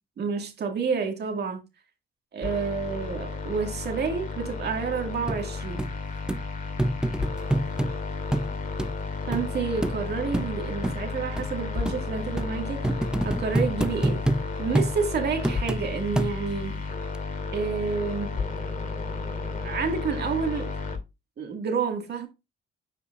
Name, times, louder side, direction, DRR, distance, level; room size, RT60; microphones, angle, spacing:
voice 1, 0.2-1.6 2.3-5.9 9.3-14.2 14.6-16.8 17.5-18.4 19.6-20.8 21.4-22.3, right 5 dB, 55° right, 1.9 m, -29 dB
sound 1, 2.4-21.0, left 4 dB, 40° left, 2.2 m, -33 dB
sound 2, 5.3-5.4 5.8-5.9 6.3-6.4 6.8-7.9 8.3-8.5 8.8-8.9 9.3-9.4 9.8-10.0 10.3-10.5 10.8-11.0 11.4-11.5 11.8-12.0 12.4-12.5 12.8-14.4 14.7-14.9 15.4-15.8 16.2-16.6 17.1-17.2, right 1 dB, 5° right, 0.5 m, -26 dB
8.5 x 4.9 x 2.4 m
cardioid pair, 90°, 20 cm